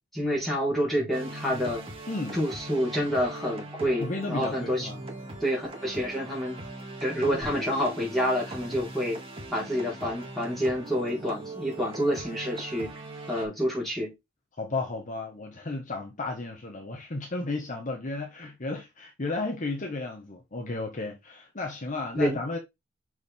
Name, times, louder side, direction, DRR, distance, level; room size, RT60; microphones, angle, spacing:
voice 1, 0.1-1.8 2.3-4.9 5.4-6.6 7.0-9.2 9.5-12.9 13.3-14.1 22.1-22.4, equal, ahead, 4.1 m, -28 dB
sound 1, 1.1-13.5, right 1 dB, 30° right, 1.8 m, -40 dB
voice 2, 2.1-2.4 4.0-5.0 14.6-22.6, left 3 dB, 40° left, 1.2 m, -33 dB
6.3 x 4.7 x 3.6 m
head